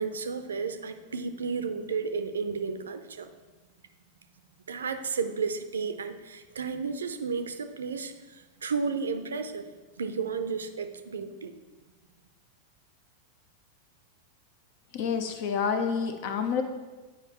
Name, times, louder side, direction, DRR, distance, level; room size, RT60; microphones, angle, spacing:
voice 1, 0.0-3.3 4.7-9.7 10.0-11.5, right 5 dB, 70° right, 9 dB, 0.5 m, -33 dB
voice 2, 14.9-16.6, left 6 dB, 50° left, 7 dB, 0.7 m, -28 dB
9.6 x 4.9 x 3.0 m, 1.3 s
figure-of-eight pair, 90°, 0 cm